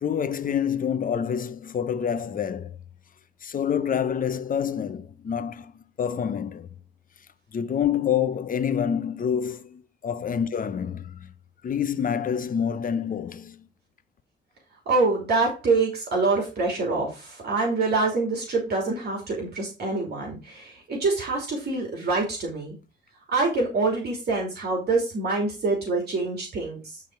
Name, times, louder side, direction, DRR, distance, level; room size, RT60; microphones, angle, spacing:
voice 1, 0.0-2.8 3.4-6.7 7.5-11.3 11.6-13.7, left 8 dB, 45° left, 0.9 m, -27 dB
voice 2, 14.9-22.8 23.3-27.0, right 3 dB, 55° right, 3.0 m, -25 dB
10.5 x 3.8 x 4.6 m
cardioid pair, 90°, 20 cm